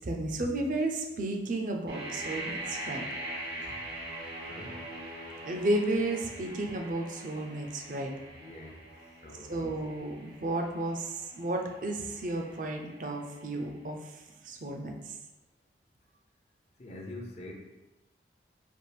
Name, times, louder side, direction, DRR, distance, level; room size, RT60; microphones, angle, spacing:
voice 1, 0.0-3.1 3.6-3.7 5.5-8.1 9.5-14.0 14.4-15.2, right 2 dB, 45° right, 2 dB, 0.5 m, -33 dB
sound 1, 1.9-13.7, right 1 dB, 80° right, 1.5 m, -42 dB
voice 2, 4.5-4.9 8.3-8.8 9.2-9.7 16.8-17.5, left 1 dB, 40° left, 0 dB, 0.5 m, -44 dB
5.1 x 2.4 x 3.3 m, 1.0 s
head